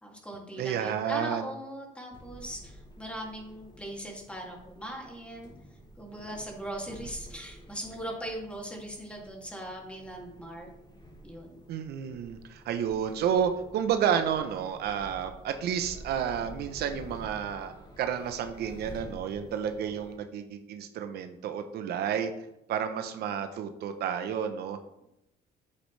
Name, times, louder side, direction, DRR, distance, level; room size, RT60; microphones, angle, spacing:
voice 1, 0.0-5.5 6.0-10.7 11.2-11.6, right 1 dB, 5° left, -1 dB, 2.6 m, -40 dB
voice 2, 0.6-1.5 11.7-22.3 22.7-24.8, right 8 dB, 70° right, 8 dB, 0.9 m, -31 dB
sound 1, 2.1-20.2, equal, 25° left, 3.7 m, -49 dB
9.9 x 8.2 x 3.3 m, 0.85 s
cardioid pair, 110°, 17 cm